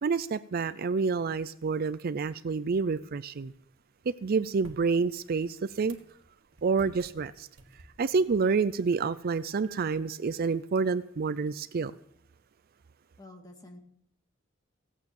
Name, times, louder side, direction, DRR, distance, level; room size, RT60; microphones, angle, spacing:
voice 1, 0.0-3.5 4.1-6.0 6.6-7.5 8.0-11.9, right 4 dB, 50° right, 0.4 m, -28 dB
sound 1, 3.3-9.7, right 1 dB, 75° right, 1.7 m, -57 dB
voice 2, 13.2-13.8, left 1 dB, 20° left, 2.2 m, -48 dB
17.0 x 8.2 x 7.1 m
head